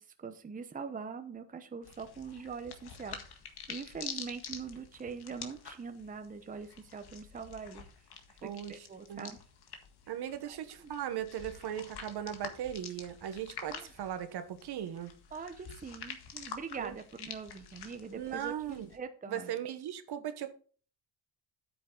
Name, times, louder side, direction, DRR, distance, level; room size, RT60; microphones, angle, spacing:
voice 1, 0.0-3.2 3.7-7.9 8.4-9.4 10.5-10.6 13.7-13.8 15.3-19.5, right 5 dB, 20° right, 8 dB, 0.8 m, -43 dB
sound 1, 1.8-19.0, left 7 dB, 60° left, 1.8 m, -48 dB
voice 2, 8.4-9.3 10.1-15.1 16.8-16.9 18.1-18.9 19.3-20.5, right 10 dB, 60° right, 10 dB, 1.2 m, -38 dB
9.2 x 8.5 x 3.9 m, 0.41 s
cardioid pair, 120°, 43 cm